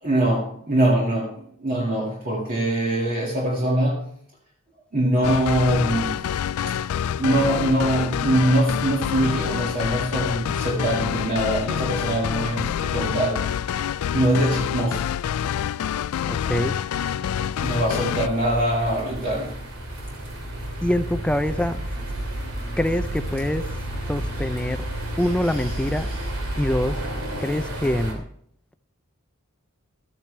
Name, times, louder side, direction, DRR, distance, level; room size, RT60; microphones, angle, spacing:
voice 1, 0.0-4.1 4.9-6.2 7.2-13.4 14.1-15.1 17.6-19.6 24.4-24.5 25.2-26.3, right 1 dB, 40° right, -4 dB, 2.0 m, -23 dB
sound 1, 5.2-18.3, left 9 dB, 85° left, 0.3 m, -27 dB
voice 2, 16.3-16.7 20.8-21.8 22.8-23.6 24.1-24.8 25.2-26.1 26.6-27.0 27.4-28.2, left 1 dB, 5° left, 10 dB, 0.4 m, -24 dB
sound 2, 17.6-28.1, right 1 dB, 75° right, 2.7 m, -31 dB
13.5 x 9.1 x 3.3 m, 0.65 s
head